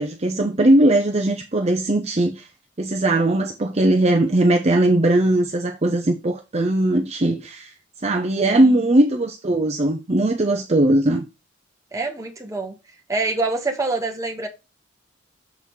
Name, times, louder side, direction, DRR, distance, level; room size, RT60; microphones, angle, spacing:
voice 1, 0.0-2.5 2.8-7.7 8.0-11.2, right 1 dB, 35° right, 0.7 m, -19 dB
voice 2, 8.4-8.9 11.9-12.7 13.1-14.5, right 3 dB, 15° right, 1.5 m, -26 dB
7.1 x 4.1 x 4.7 m
head